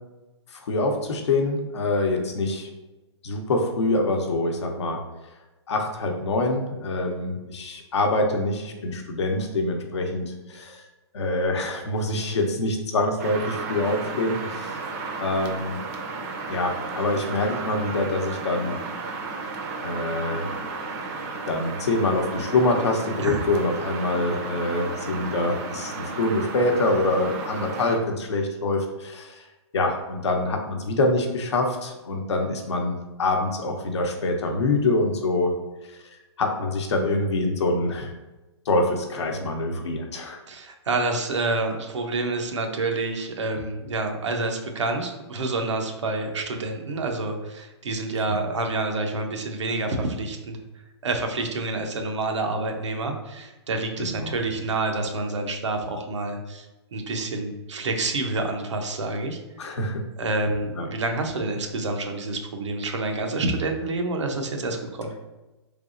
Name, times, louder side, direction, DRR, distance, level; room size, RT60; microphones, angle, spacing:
voice 1, 0.5-2.7 3.2-5.0 5.7-10.8 11.1-14.8 15.2-15.8 16.5-18.8 19.8-20.4 21.5-29.4 29.7-35.5 36.4-38.1 38.7-40.4 48.3-48.4 54.0-54.4 59.6-60.0 60.8-60.9, left 2 dB, 75° left, 3 dB, 0.8 m, -25 dB
sound 1, 13.2-28.0, right 4 dB, 35° right, 0.5 m, -33 dB
voice 2, 40.5-50.6 51.0-56.7 56.9-59.4 60.2-65.1, right 2 dB, 85° right, 3 dB, 0.7 m, -28 dB
3.9 x 3.3 x 2.5 m, 1.1 s
hypercardioid pair, 145°, 15 cm